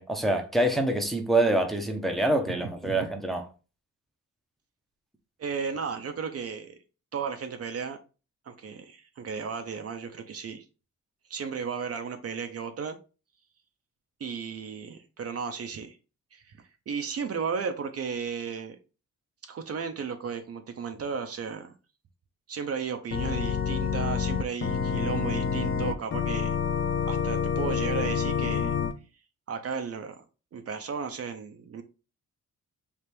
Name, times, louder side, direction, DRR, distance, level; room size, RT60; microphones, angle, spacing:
voice 1, 0.0-3.4, right 1 dB, ahead, 0.7 m, -26 dB
voice 2, 2.5-3.1 5.4-6.8 7.1-8.0 8.5-10.6 11.3-13.0 14.2-16.0 16.3-18.8 19.5-21.7 22.5-26.6 27.1-28.7 29.5-30.2 30.5-31.8, right 6 dB, 50° right, 0.6 m, -34 dB
Organ, 23.1-28.9, left 6 dB, 40° left, 0.6 m, -28 dB
3.4 x 2.4 x 4.3 m
cardioid pair, 100°, 31 cm